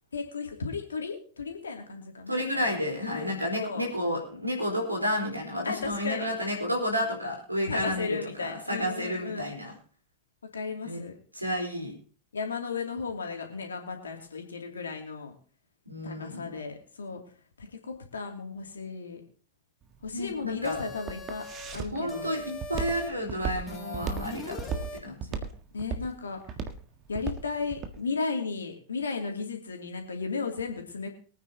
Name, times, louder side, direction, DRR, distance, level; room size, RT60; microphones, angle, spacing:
voice 1, 0.1-2.7 3.0-3.9 5.6-6.3 7.7-9.5 10.5-11.1 12.3-15.3 16.0-17.2 17.6-19.2 20.0-21.4 21.7-22.3 25.7-26.4 27.1-31.1, left 4 dB, 70° left, 3 dB, 2.6 m, -35 dB
voice 2, 2.3-9.7 10.8-11.0 11.4-11.9 15.9-16.5 20.1-20.8 21.9-25.2, equal, 85° right, 2 dB, 4.0 m, -31 dB
Walk footsteps, 19.8-28.0, right 5 dB, 30° right, 1.6 m, -35 dB
sound 1, 20.6-21.8 22.1-23.1 23.7-25.0, left 1 dB, 15° left, 2.7 m, -41 dB
23.5 x 9.4 x 2.9 m, 0.40 s
figure-of-eight pair, 90°, 0 cm